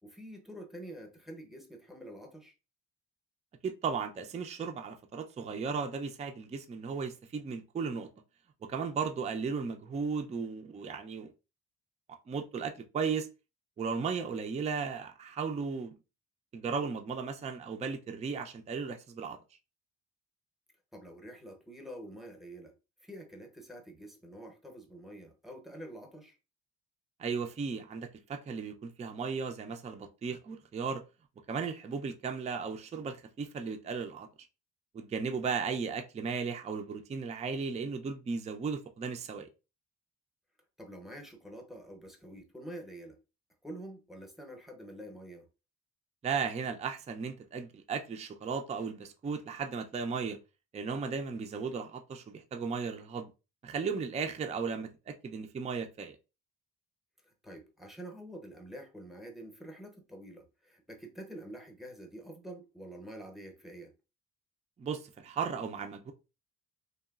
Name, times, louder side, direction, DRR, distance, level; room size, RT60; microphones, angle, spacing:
voice 1, 0.0-2.5 20.9-22.7 23.0-26.4 40.8-43.2 43.6-45.5 57.2-63.9, right 1 dB, ahead, 0.7 m, -47 dB
voice 2, 3.6-8.1 8.7-11.3 12.3-13.3 13.8-15.9 16.5-19.4 27.2-31.0 31.5-34.3 34.9-39.5 46.2-50.4 50.7-53.3 53.6-56.2 64.8-66.1, right 5 dB, 25° right, 0.3 m, -35 dB
2.9 x 2.3 x 2.3 m
cardioid pair, 90°, 30 cm